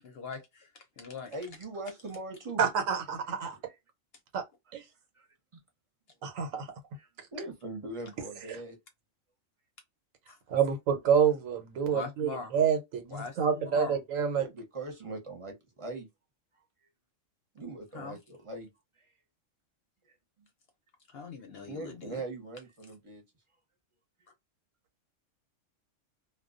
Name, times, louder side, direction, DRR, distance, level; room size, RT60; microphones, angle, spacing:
voice 1, 0.0-1.3 10.3-10.4 11.9-12.5 13.1-14.0 17.9-18.2 21.1-22.2, left 5 dB, 60° left, 0.7 m, -41 dB
voice 2, 1.3-2.6 3.7-3.8 5.1-5.3 6.9-8.8 14.4-16.1 17.5-18.7 20.4-20.5 21.6-23.2, right 2 dB, 30° right, 0.8 m, -41 dB
voice 3, 2.6-3.6 4.3-4.4 4.7-4.8 6.2-6.7 10.5-14.5, right 7 dB, 90° right, 1.2 m, -28 dB
2.3 x 2.2 x 2.4 m
omnidirectional pair, 1.3 m